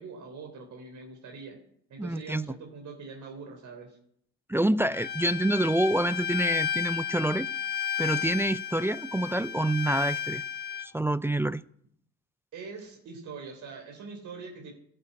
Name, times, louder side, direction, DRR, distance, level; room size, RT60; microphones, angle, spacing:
voice 1, 0.0-1.6 1.9-4.0 12.5-14.7, right 4 dB, 75° right, 3.7 m, -43 dB
voice 2, 2.0-2.5 4.5-7.5 8.0-10.4 10.8-11.6, right 1 dB, 10° right, 0.5 m, -27 dB
Bowed string instrument, 4.9-10.9, left 8 dB, 35° left, 1.0 m, -33 dB
12.5 x 11.5 x 8.6 m
cardioid pair, 90°, 30 cm